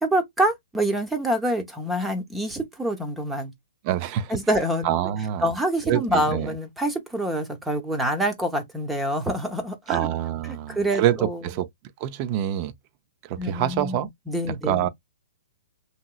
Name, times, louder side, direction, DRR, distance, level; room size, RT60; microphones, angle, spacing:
voice 1, 0.0-3.5 4.3-4.9 5.4-10.1 10.5-11.4 13.4-14.9, right 1 dB, 5° right, 0.7 m, -26 dB
voice 2, 3.8-4.4 4.8-5.5 5.9-6.5 9.9-11.7 12.0-12.7 13.2-14.1 14.5-14.9, right 11 dB, 40° right, 0.4 m, -26 dB
2.9 x 2.8 x 2.2 m
hypercardioid pair, 130°, 0 cm